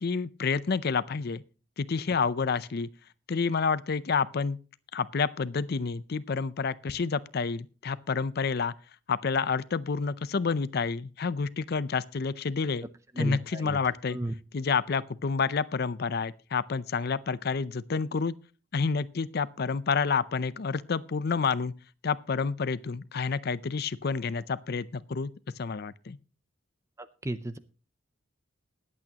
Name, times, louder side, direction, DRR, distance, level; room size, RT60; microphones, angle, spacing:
voice 1, 0.0-1.4 1.8-2.9 3.3-4.6 4.9-8.7 9.1-12.9 13.2-14.2 14.5-18.3 18.7-21.7 22.0-25.3 25.6-26.2, left 5 dB, 55° left, 0.5 m, -29 dB
voice 2, 13.1-13.8 14.1-14.3 27.0-27.6, right 1 dB, 15° right, 0.5 m, -34 dB
21.0 x 8.4 x 2.9 m
head